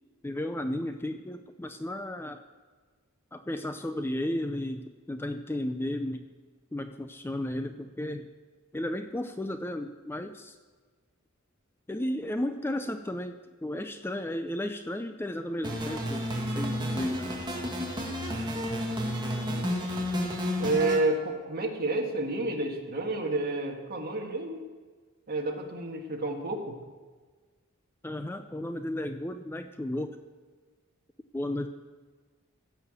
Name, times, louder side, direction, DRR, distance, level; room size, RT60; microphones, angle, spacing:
voice 1, 0.2-2.4 3.3-6.3 6.7-8.3 8.7-10.6 11.9-17.5 28.0-30.2 31.3-31.7, left 1 dB, 10° left, 8 dB, 0.4 m, -34 dB
sound 1, 15.6-21.0, equal, 20° right, 1.9 m, -31 dB
voice 2, 20.6-24.6 25.3-26.8, right 2 dB, 45° right, 2 dB, 1.7 m, -30 dB
15.5 x 5.8 x 7.9 m, 1.4 s
head